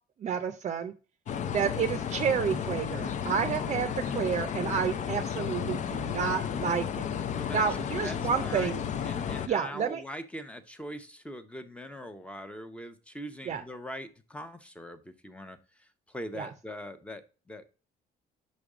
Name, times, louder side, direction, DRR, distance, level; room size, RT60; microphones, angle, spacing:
voice 1, 0.2-0.9 1.5-7.0 7.5-8.8 9.5-10.0 13.5-13.6 16.4-16.5, right 7 dB, 45° right, 8 dB, 0.6 m, -30 dB
sound 1, 1.3-9.5, left 8 dB, 45° left, 0.5 m, -33 dB
voice 2, 7.3-7.7 8.0-8.7 9.0-17.7, equal, 5° left, 9 dB, 0.7 m, -42 dB
5.4 x 5.1 x 4.9 m, 0.35 s
cardioid pair, 110°, 17 cm